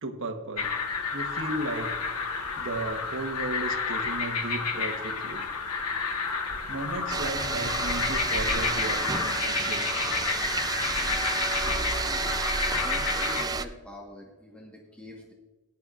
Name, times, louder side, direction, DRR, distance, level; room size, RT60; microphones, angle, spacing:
voice 1, 0.0-0.7 1.1-1.9 2.6-5.4 6.7-10.0, right 2 dB, 60° right, 4 dB, 1.2 m, -35 dB
sound 1, 0.6-13.4, left 5 dB, 85° left, 1.2 m, -30 dB
sound 2, 7.1-13.6, right 4 dB, 15° right, 0.4 m, -30 dB
voice 2, 11.4-12.3 12.8-15.3, left 1 dB, 5° left, -2 dB, 1.3 m, -45 dB
17.5 x 10.5 x 2.5 m, 1.2 s
head